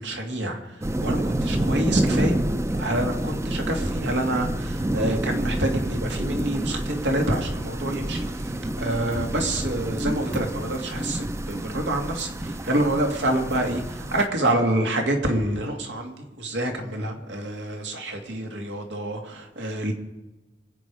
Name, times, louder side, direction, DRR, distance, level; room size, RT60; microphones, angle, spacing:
voice 1, 0.0-2.4 2.7-19.9, right 1 dB, 85° right, 2 dB, 2.5 m, -27 dB
sound 1, 0.8-14.3, right 1 dB, 15° right, 0.6 m, -28 dB
25.5 x 8.7 x 4.9 m, 1.1 s
head